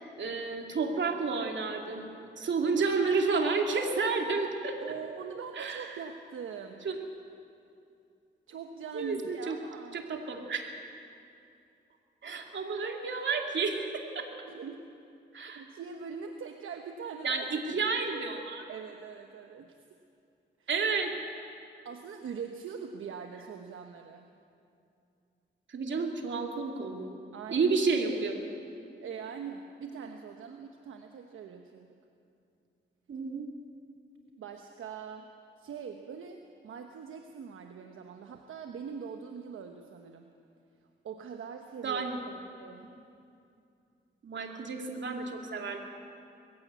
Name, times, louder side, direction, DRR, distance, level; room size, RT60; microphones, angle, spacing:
voice 1, 0.2-4.8 5.6-5.9 6.8-7.0 8.9-9.5 9.9-10.6 12.2-14.3 15.3-15.6 17.2-18.6 20.7-21.2 25.7-27.2 27.5-28.4 33.1-33.5 41.8-42.3 44.2-45.8, right 4 dB, 65° right, 2 dB, 2.7 m, -31 dB
voice 2, 4.8-6.9 8.5-10.0 14.5-14.8 15.5-18.0 18.7-19.8 20.6-20.7 21.8-24.3 27.3-27.7 29.0-32.0 34.4-35.3 35.6-40.3 41.0-42.0 42.5-42.9, right 6 dB, 80° right, 5 dB, 1.1 m, -42 dB
21.5 x 15.5 x 8.2 m, 2.6 s
cardioid pair, 60°, 20 cm